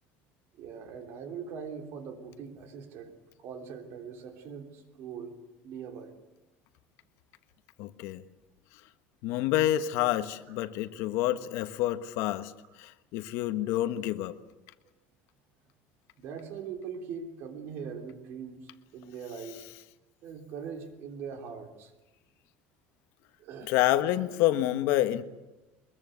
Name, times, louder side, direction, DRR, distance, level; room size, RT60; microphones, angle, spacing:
voice 1, 0.6-3.1 3.4-5.3 5.6-6.1 16.2-19.6 20.2-21.9 23.4-23.7, right 6 dB, 50° right, 3.4 m, -41 dB
voice 2, 7.8-8.2 9.2-12.5 12.8-14.4 23.6-25.2, left 14 dB, 65° left, 1.3 m, -28 dB
23.0 x 22.0 x 8.0 m
cardioid pair, 165°, 5 cm